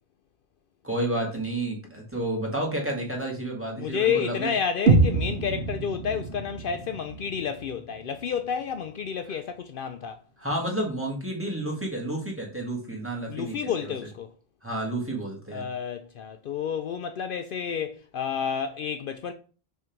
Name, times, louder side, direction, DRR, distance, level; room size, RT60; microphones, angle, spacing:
voice 1, 0.8-4.5 10.4-13.9 14.6-15.6, right 1 dB, 10° right, 1.8 m, -30 dB
voice 2, 3.8-10.2 13.3-14.3 15.5-19.3, left 7 dB, 65° left, 0.7 m, -30 dB
sound 1, 4.9-8.8, right 3 dB, 75° right, 1.1 m, -26 dB
6.2 x 3.5 x 4.5 m
omnidirectional pair, 1.1 m